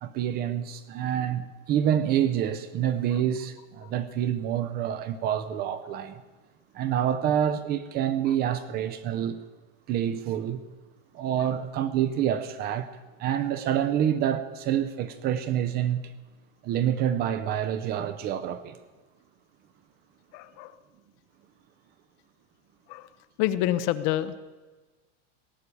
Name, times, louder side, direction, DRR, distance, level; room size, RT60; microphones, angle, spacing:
voice 1, 0.0-6.2 6.7-9.4 9.9-10.6 11.1-12.9 13.2-16.1 16.6-18.8, right 10 dB, 25° right, 0.5 m, -27 dB
voice 2, 20.3-20.7 22.9-23.1 23.4-24.4, left 13 dB, 40° left, 0.7 m, -27 dB
18.0 x 6.6 x 8.4 m
supercardioid pair, 150°, 36 cm